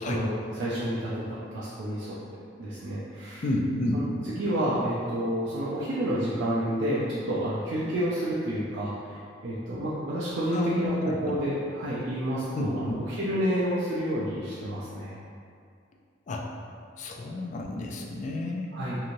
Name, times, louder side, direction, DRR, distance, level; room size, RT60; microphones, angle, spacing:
voice 1, 0.0-2.2 2.6-3.4 3.9-15.1 18.7-19.0, equal, 80° right, -8 dB, 0.4 m, -30 dB
voice 2, 3.4-4.0 10.5-11.2 12.5-13.0 16.3-16.5 17.0-18.7, left 2 dB, 40° left, 1 dB, 0.3 m, -30 dB
3.0 x 2.6 x 2.5 m, 2.3 s
head